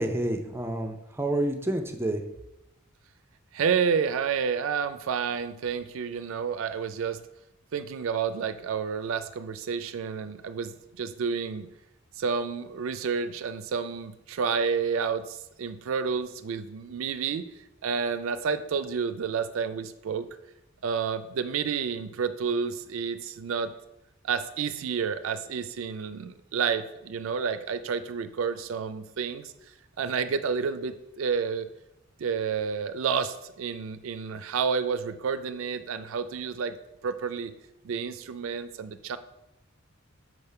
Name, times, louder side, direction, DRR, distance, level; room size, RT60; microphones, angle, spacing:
voice 1, 0.0-2.2, right 1 dB, 10° right, 5 dB, 0.5 m, -29 dB
voice 2, 3.5-7.2 7.7-11.7 12.2-17.5 17.8-20.3 20.8-23.7 24.2-29.5 30.0-31.7 32.2-36.8 37.0-37.5 37.8-39.2, right 6 dB, 80° right, 12 dB, 0.4 m, -30 dB
6.3 x 3.6 x 5.4 m, 0.88 s
head